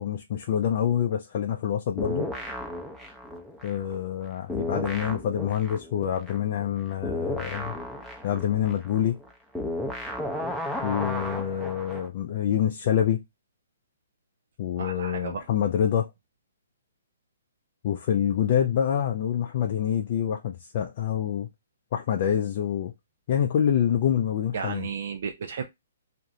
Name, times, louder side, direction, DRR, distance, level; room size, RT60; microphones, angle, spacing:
voice 1, 0.0-2.3 3.6-7.8 8.2-9.2 10.8-13.2 14.6-16.1 17.8-21.5 21.9-22.9 23.3-24.9, left 9 dB, 45° left, 0.4 m, -26 dB
sound 1, 2.0-4.2 4.5-12.1, left 1 dB, ahead, 0.6 m, -34 dB
voice 2, 14.8-15.5 24.5-25.6, right 6 dB, 60° right, 0.4 m, -33 dB
2.5 x 2.4 x 2.9 m
hypercardioid pair, 130°, 0 cm